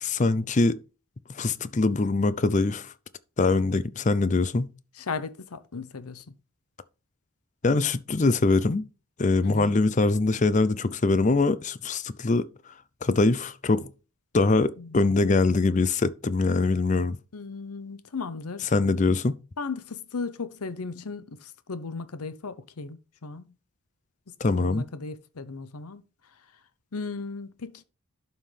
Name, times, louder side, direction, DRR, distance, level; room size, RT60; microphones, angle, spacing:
voice 1, 0.0-0.8 1.3-2.9 3.4-4.7 7.6-8.9 9.2-12.4 13.0-13.9 14.3-17.2 18.7-19.4 24.4-24.9, left 3 dB, 35° left, 0.5 m, -23 dB
voice 2, 5.0-6.2 9.4-9.8 14.8-15.0 17.3-18.7 19.6-23.5 24.5-26.0 26.9-27.8, left 4 dB, 90° left, 0.8 m, -36 dB
11.5 x 5.6 x 3.3 m
head